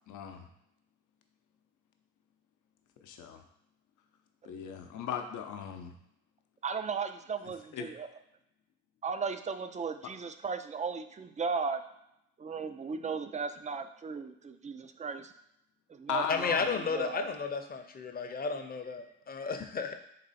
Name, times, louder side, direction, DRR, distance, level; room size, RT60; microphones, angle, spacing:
voice 1, 0.1-0.5 3.0-3.4 4.4-5.9 7.7-7.9 16.1-16.8, left 8 dB, 80° left, 5 dB, 0.7 m, -37 dB
voice 2, 6.6-8.1 9.0-11.8 12.4-15.3 15.9-17.3, right 5 dB, 25° right, 9 dB, 0.3 m, -36 dB
voice 3, 16.3-19.9, left 5 dB, 30° left, 6 dB, 0.6 m, -33 dB
4.0 x 3.0 x 4.1 m, 0.81 s
cardioid pair, 90°, 30 cm